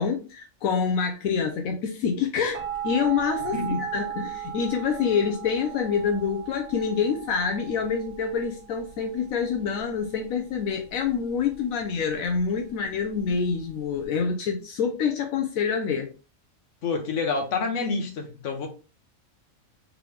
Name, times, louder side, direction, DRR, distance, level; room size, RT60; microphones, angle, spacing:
voice 1, 0.0-16.1, left 6 dB, 85° left, 1.0 m, -26 dB
sound 1, 2.5-14.0, right 10 dB, 90° right, 1.5 m, -38 dB
voice 2, 3.5-3.8 16.8-18.7, left 4 dB, 65° left, 1.2 m, -28 dB
3.7 x 3.4 x 3.2 m
omnidirectional pair, 1.4 m